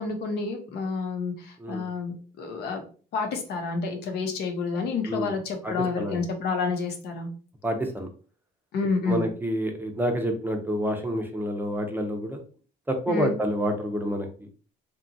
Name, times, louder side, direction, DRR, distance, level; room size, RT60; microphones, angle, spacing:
voice 1, 0.0-2.8 3.1-7.3 8.7-9.2 13.1-13.3, left 4 dB, 70° left, 4 dB, 0.7 m, -29 dB
voice 2, 5.1-5.4 5.6-6.2 7.6-8.1 9.0-12.4 12.9-14.5, equal, 10° right, 3 dB, 0.5 m, -28 dB
2.8 x 2.3 x 2.6 m, 0.39 s
cardioid pair, 110°, 17 cm